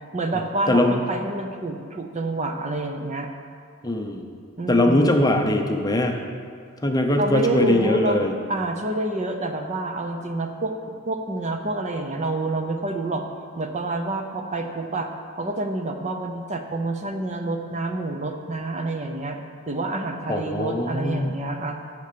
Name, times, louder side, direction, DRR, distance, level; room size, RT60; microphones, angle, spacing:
voice 1, 0.1-3.3 4.6-5.3 7.2-8.2 8.5-10.7 11.1-13.3 13.6-15.1 15.4-19.4 19.7-21.8, right 2 dB, 30° right, 5 dB, 0.7 m, -28 dB
voice 2, 0.7-1.0 3.8-4.4 4.7-6.2 6.8-8.3 20.3-21.3, left 1 dB, 15° left, 3 dB, 0.7 m, -21 dB
9.9 x 6.7 x 6.8 m, 2.2 s
head